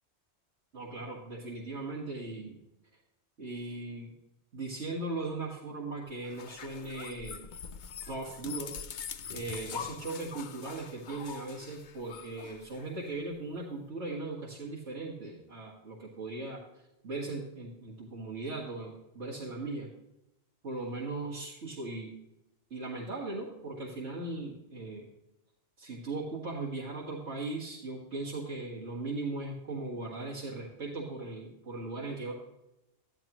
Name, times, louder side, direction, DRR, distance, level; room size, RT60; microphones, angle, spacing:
voice 1, 0.7-2.5 3.4-4.1 4.5-7.4 8.1-8.7 9.3-16.6 17.0-19.9 20.6-22.1 22.7-25.1 25.8-32.3, right 2 dB, 85° right, -5 dB, 2.1 m, -38 dB
sound 1, 6.2-13.2, left 7 dB, 55° left, 0.6 m, -43 dB
13.5 x 11.0 x 3.0 m, 0.89 s
omnidirectional pair, 1.2 m